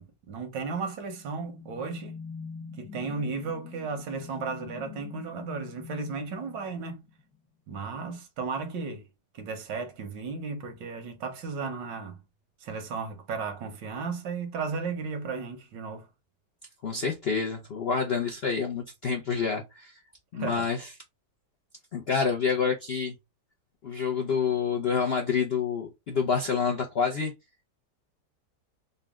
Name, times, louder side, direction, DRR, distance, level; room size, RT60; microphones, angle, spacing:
voice 1, 0.0-2.2 2.8-7.0 7.7-9.0 9.3-12.2 12.6-16.1 20.3-20.7, right 4 dB, 80° right, 1.6 m, -34 dB
sound 1, 1.0-7.4, left 5 dB, 60° left, 1.5 m, -44 dB
voice 2, 16.8-20.0 20.3-20.9 21.9-23.1 23.8-27.3, left 6 dB, 80° left, 0.5 m, -28 dB
4.0 x 2.2 x 3.5 m
omnidirectional pair, 1.9 m